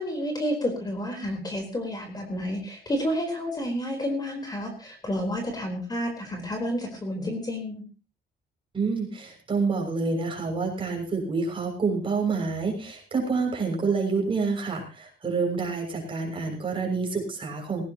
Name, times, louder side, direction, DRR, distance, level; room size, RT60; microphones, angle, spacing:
voice 1, 0.0-7.8, equal, 20° left, 3 dB, 4.0 m, -30 dB
voice 2, 8.7-17.8, right 4 dB, 30° right, 1 dB, 6.5 m, -28 dB
18.0 x 18.0 x 3.0 m, 0.31 s
cardioid pair, 145°, 18 cm